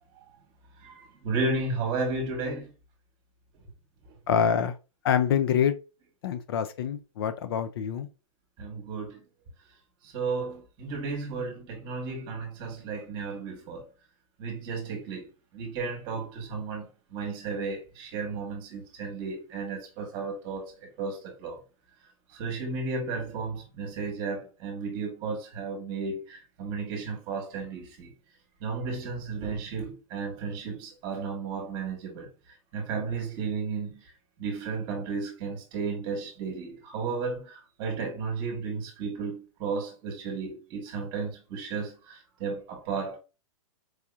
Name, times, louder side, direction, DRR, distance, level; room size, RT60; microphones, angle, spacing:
voice 1, 0.8-2.7 8.6-9.2 10.0-13.9 14.4-21.6 22.3-28.1 28.6-34.1 34.4-43.2, right 4 dB, 25° right, 1.3 m, -34 dB
voice 2, 4.3-4.7 5.0-5.7 6.2-8.1, left 8 dB, 45° left, 0.4 m, -25 dB
4.7 x 2.8 x 2.4 m
supercardioid pair, 170°, 17 cm